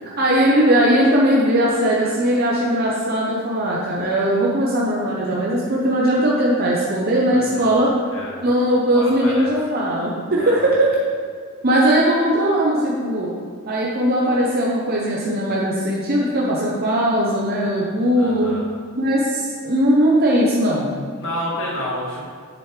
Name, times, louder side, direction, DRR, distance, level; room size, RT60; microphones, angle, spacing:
voice 1, 0.2-7.9 8.4-10.9 11.6-13.3 13.7-18.5 19.0-20.9, right 1 dB, 45° right, -4 dB, 0.9 m, -19 dB
voice 2, 7.3-7.7 8.1-8.4 8.9-9.5 10.4-10.7 18.2-18.7 21.2-22.3, left 1 dB, 60° left, -4 dB, 1.9 m, -30 dB
7.7 x 6.8 x 3.3 m, 2.1 s
head